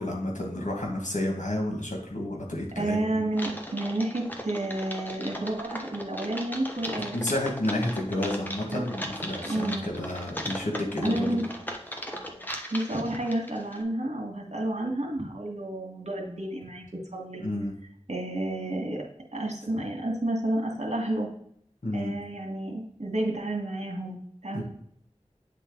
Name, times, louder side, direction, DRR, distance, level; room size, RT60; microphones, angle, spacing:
voice 1, 0.0-3.2 7.1-11.5 17.4-17.7 21.8-22.1 24.5-24.6, left 1 dB, 85° left, -1 dB, 2.0 m, -31 dB
voice 2, 2.8-7.4 8.7-8.8 9.5-9.9 11.0-11.4 12.7-16.9 17.1-17.4 18.1-19.0 19.3-21.3 21.9-24.6, right 1 dB, 65° right, 0 dB, 2.0 m, -30 dB
Typing, 3.3-13.8, equal, 15° left, 1.2 m, -38 dB
9.2 x 3.9 x 4.0 m, 0.66 s
wide cardioid pair, 40°, 12 cm